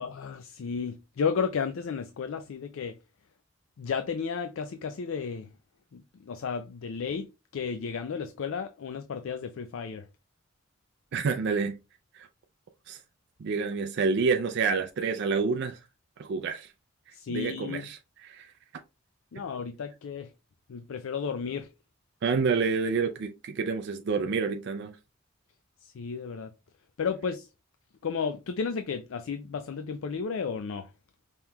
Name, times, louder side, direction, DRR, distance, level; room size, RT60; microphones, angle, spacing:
voice 1, 0.0-3.0 3.8-5.5 5.9-7.3 7.5-10.1 17.1-17.9 19.3-20.3 20.7-21.7 25.8-26.5 27.0-27.5 28.0-30.9, left 6 dB, 75° left, 0.4 m, -33 dB
voice 2, 11.1-11.8 12.1-12.3 12.9-13.0 13.4-15.8 16.2-16.7 17.3-18.5 22.2-25.0, right 5 dB, 60° right, 0.4 m, -28 dB
5.4 x 3.0 x 2.3 m
head